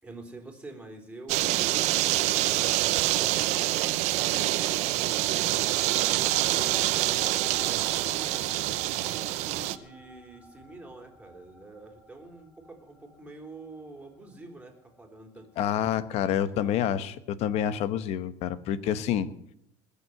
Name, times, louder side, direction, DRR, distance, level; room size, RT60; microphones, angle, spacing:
voice 1, 0.0-15.5 16.2-16.8, right 2 dB, 10° right, 4 dB, 3.5 m, -46 dB
sound 1, 1.3-9.8, right 16 dB, 70° right, 0.8 m, -26 dB
sound 2, 5.1-15.9, left 1 dB, 25° left, 4.7 m, -50 dB
voice 2, 15.6-19.3, left 10 dB, 60° left, 15 dB, 1.1 m, -28 dB
20.5 x 7.1 x 7.8 m, 0.74 s
cardioid pair, 125°, 12 cm